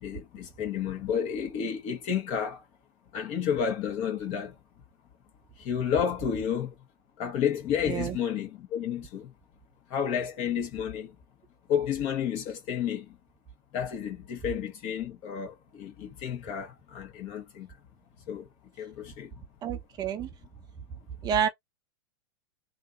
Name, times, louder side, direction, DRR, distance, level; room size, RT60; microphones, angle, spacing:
voice 1, 0.0-2.6 3.1-4.5 5.6-6.7 7.2-9.3 9.9-11.1 11.7-13.1 13.7-17.7 18.3-18.5 18.8-19.3, left 8 dB, 45° left, 1.6 m, -31 dB
voice 2, 7.9-8.2 19.6-20.3 21.2-21.5, right 8 dB, 30° right, 0.6 m, -28 dB
3.3 x 2.6 x 2.9 m
hypercardioid pair, 120°, 14 cm